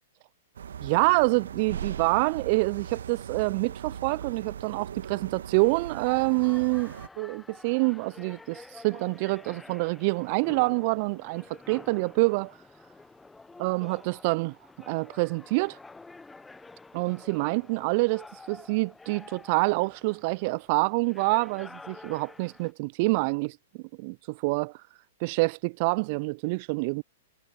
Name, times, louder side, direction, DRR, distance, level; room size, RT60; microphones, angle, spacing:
sound 1, 0.5-7.1, right 8 dB, 70° right, 1.4 m, -39 dB
voice 1, 0.8-12.5 13.6-14.6 14.9-15.8 16.9-23.6 24.0-24.7 25.2-27.0, right 28 dB, 45° right, 0.4 m, -26 dB
sound 2, 5.6-22.7, left 3 dB, 10° left, 0.9 m, -49 dB
figure-of-eight pair, 110°, 0 cm